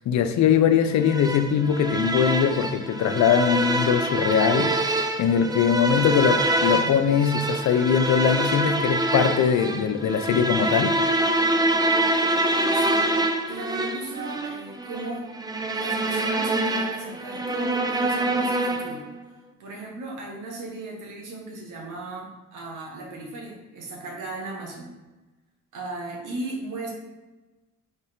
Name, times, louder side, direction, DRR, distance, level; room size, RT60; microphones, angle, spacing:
voice 1, 0.0-4.9 5.2-11.0, left 8 dB, 65° left, 8 dB, 0.5 m, -21 dB
sound 1, 1.1-19.1, right 1 dB, 15° right, 0.4 m, -25 dB
voice 2, 12.7-13.1 13.5-15.3 15.7-19.0 19.6-24.9 25.7-26.9, right 2 dB, 85° right, -1 dB, 1.3 m, -36 dB
3.4 x 3.3 x 4.4 m, 1.1 s
cardioid pair, 90°, 30 cm